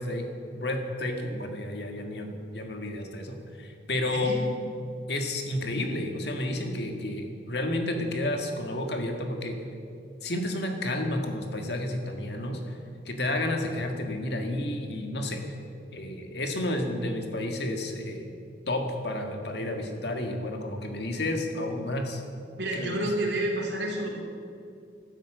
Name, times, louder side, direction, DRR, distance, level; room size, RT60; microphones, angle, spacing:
voice 1, 0.0-4.3 5.1-9.6 10.2-12.8 13.1-15.4 15.9-18.4 18.7-22.2 22.7-23.1, left 1 dB, 65° left, 4 dB, 1.7 m, -31 dB
voice 2, 22.6-24.2, right 1 dB, 70° right, 0 dB, 3.0 m, -29 dB
12.5 x 10.0 x 7.9 m, 2.5 s
head